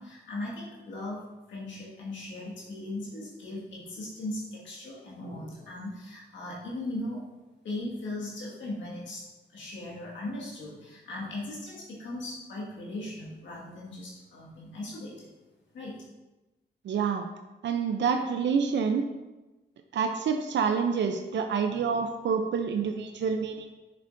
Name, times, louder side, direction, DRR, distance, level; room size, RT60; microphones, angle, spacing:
voice 1, 0.0-7.3 7.6-15.3 15.7-16.0, left 1 dB, 85° left, -6 dB, 1.8 m, -38 dB
voice 2, 16.8-17.3 17.6-19.0 19.9-23.7, right 6 dB, 75° right, 5 dB, 0.5 m, -27 dB
6.9 x 6.7 x 2.6 m, 1.1 s
cardioid pair, 70°, 19 cm